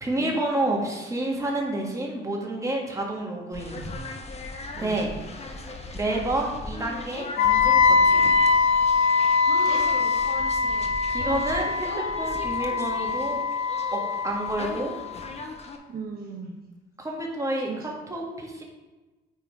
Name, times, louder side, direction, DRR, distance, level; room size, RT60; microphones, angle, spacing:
voice 1, 0.0-3.9 4.8-5.1 5.9-8.3 11.1-13.5 13.9-14.9 17.0-17.7 18.1-18.6, right 1 dB, 15° right, -1 dB, 1.9 m, -29 dB
sound 1, 3.5-15.8, left 2 dB, 30° left, 1.1 m, -38 dB
voice 2, 4.7-5.0 9.4-9.9 15.9-16.6 17.7-17.9, right 4 dB, 50° right, -1 dB, 1.2 m, -37 dB
Wind instrument woodwind instrument, 7.4-15.3, left 4 dB, 75° left, 0.8 m, -23 dB
9.0 x 3.8 x 4.9 m, 1.2 s
cardioid pair, 90°, 20 cm